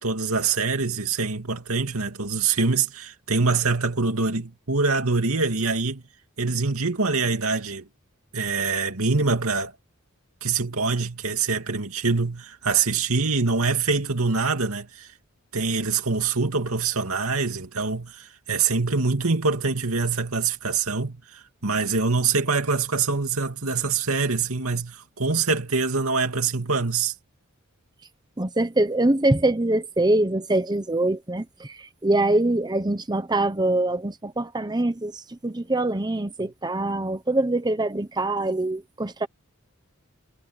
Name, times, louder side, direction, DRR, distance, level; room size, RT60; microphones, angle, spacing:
voice 1, 0.0-6.0 6.4-7.9 8.3-9.7 10.4-15.1 15.5-27.1, right 4 dB, 75° right, 2.7 m, -24 dB
voice 2, 28.4-39.3, right 2 dB, 20° right, 1.0 m, -24 dB
head